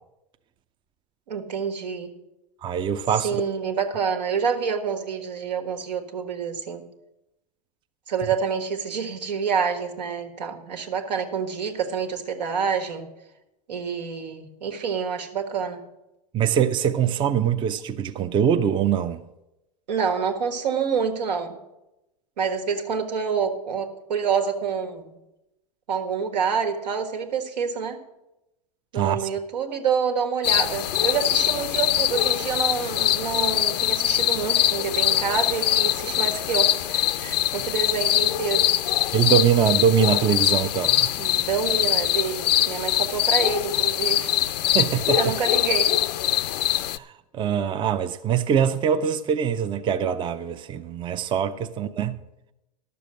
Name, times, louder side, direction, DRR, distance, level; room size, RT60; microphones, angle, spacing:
voice 1, 1.3-2.1 3.1-6.8 8.1-13.1 13.7-15.8 19.9-21.6 22.4-25.1 25.9-28.0 28.9-38.7 41.2-44.4 45.1-45.9, right 6 dB, 80° right, 1.7 m, -27 dB
voice 2, 2.6-3.4 16.3-19.2 28.9-29.2 39.1-41.2 44.7-45.3 46.7-47.1 47.3-52.2, right 8 dB, 25° right, 0.5 m, -23 dB
sound 1, 30.4-47.0, left 13 dB, 75° left, 0.6 m, -23 dB
12.0 x 7.0 x 7.6 m
hypercardioid pair, 110°, 21 cm